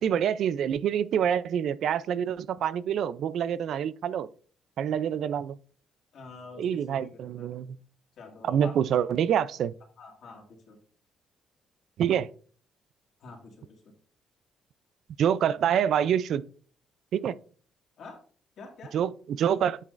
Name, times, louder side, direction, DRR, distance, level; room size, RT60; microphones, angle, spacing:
voice 1, 0.0-4.3 4.8-5.6 6.6-7.8 8.4-9.7 12.0-12.3 15.2-16.4 17.1-17.3 18.9-19.8, right 9 dB, 70° right, 0.4 m, -26 dB
voice 2, 6.1-7.6 8.2-8.8 10.0-10.8 13.2-13.9 18.0-18.2 18.6-18.9, left 3 dB, 65° left, 2.3 m, -47 dB
8.8 x 6.2 x 2.5 m
cardioid pair, 90°, 0 cm